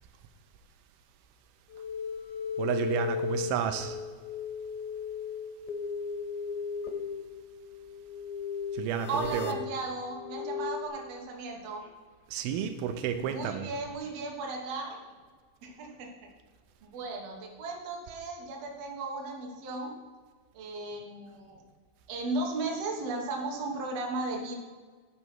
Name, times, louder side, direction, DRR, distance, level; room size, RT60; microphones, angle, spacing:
sound 1, 1.7-10.9, left 6 dB, 80° left, 2.7 m, -36 dB
voice 1, 2.6-4.0 8.7-9.6 12.3-13.7, right 8 dB, 85° right, 8 dB, 2.6 m, -31 dB
voice 2, 9.1-11.9 13.2-15.0 15.6-16.3 16.8-20.0 20.5-21.6 22.1-24.6, right 3 dB, 55° right, 1 dB, 2.1 m, -36 dB
9.8 x 6.1 x 6.2 m, 1.5 s
omnidirectional pair, 4.3 m